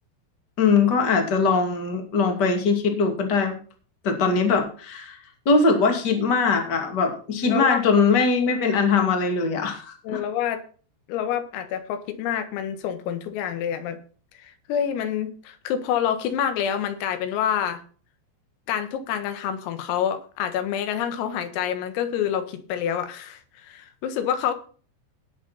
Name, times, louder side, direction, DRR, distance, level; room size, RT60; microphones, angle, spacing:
voice 1, 0.6-3.5 4.0-5.2 5.4-10.2, left 4 dB, 40° left, 4 dB, 1.5 m, -21 dB
voice 2, 7.4-7.9 10.0-10.6 11.1-14.0 14.4-17.8 18.7-24.5, left 9 dB, 85° left, 9 dB, 4.2 m, -27 dB
19.0 x 6.7 x 4.1 m, 0.40 s
omnidirectional pair, 5.9 m